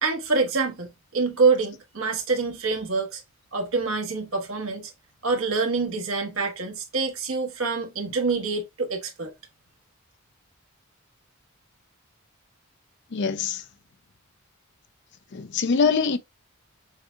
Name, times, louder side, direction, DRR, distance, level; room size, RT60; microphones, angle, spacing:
voice 1, 0.0-3.2 3.5-4.9 5.2-9.3, right 4 dB, 75° right, 1.2 m, -26 dB
voice 2, 13.1-13.6 15.3-16.2, left 5 dB, 55° left, 0.5 m, -23 dB
6.5 x 2.3 x 2.6 m
head